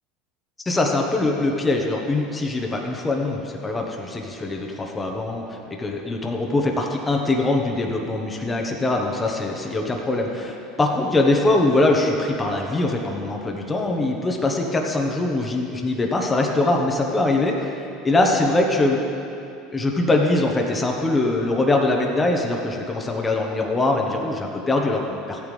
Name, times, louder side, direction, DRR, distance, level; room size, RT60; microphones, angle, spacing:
voice 1, 0.6-19.0 19.7-25.5, left 2 dB, 15° left, 1 dB, 1.1 m, -22 dB
14.0 x 8.8 x 3.3 m, 2.8 s
supercardioid pair, 95°, 0 cm